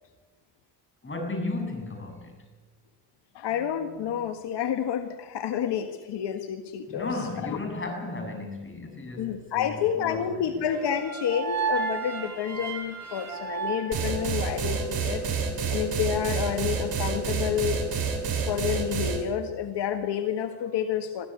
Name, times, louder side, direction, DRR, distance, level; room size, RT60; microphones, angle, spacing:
voice 1, 1.0-2.5 6.9-10.6, left 2 dB, 30° left, 4 dB, 7.3 m, -34 dB
voice 2, 3.3-7.1 7.4-7.6 9.2-15.2 15.7-17.8 18.5-21.3, left 9 dB, 75° left, 7 dB, 1.6 m, -29 dB
sound 1, 10.7-14.9, right 5 dB, 40° right, 6.1 m, -33 dB
sound 2, 13.9-19.2, right 5 dB, 60° right, 6.6 m, -28 dB
22.0 x 14.5 x 9.6 m, 1.2 s
cardioid pair, 95°, 41 cm